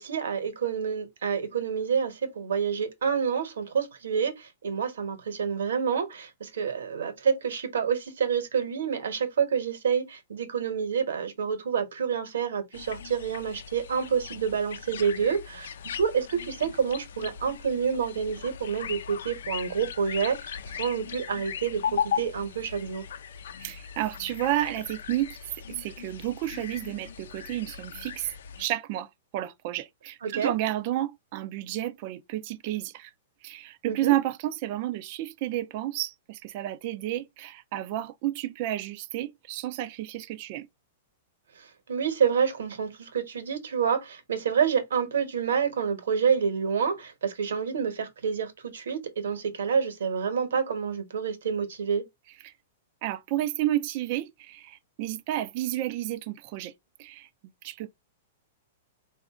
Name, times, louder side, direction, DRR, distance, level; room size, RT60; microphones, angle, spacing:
voice 1, 0.0-15.7 16.0-23.0 30.2-30.5 33.9-34.1 41.9-52.0, right 6 dB, 85° right, 1.3 m, -28 dB
sound 1, 12.7-28.6, left 8 dB, 80° left, 0.5 m, -38 dB
voice 2, 23.6-25.3 25.8-28.3 28.6-29.1 29.3-33.1 33.4-40.7 52.4-52.5 53.0-56.7 57.0-57.3 57.6-57.9, right 14 dB, 50° right, 0.5 m, -31 dB
4.0 x 2.6 x 3.6 m
hypercardioid pair, 140°, 0 cm